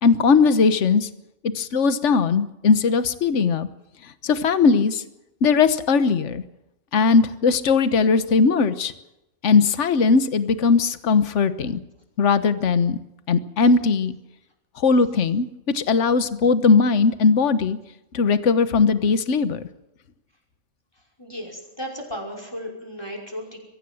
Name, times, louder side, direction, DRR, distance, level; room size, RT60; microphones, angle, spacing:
voice 1, 0.0-1.1 1.5-3.7 4.2-5.0 5.4-6.4 6.9-8.9 9.4-11.8 12.2-13.0 13.3-14.2 14.8-17.8 18.1-19.6, left 5 dB, 60° left, 12 dB, 1.4 m, -19 dB
voice 2, 21.2-23.6, equal, 15° left, 1 dB, 5.6 m, -34 dB
23.5 x 16.0 x 7.8 m, 0.91 s
omnidirectional pair, 1.5 m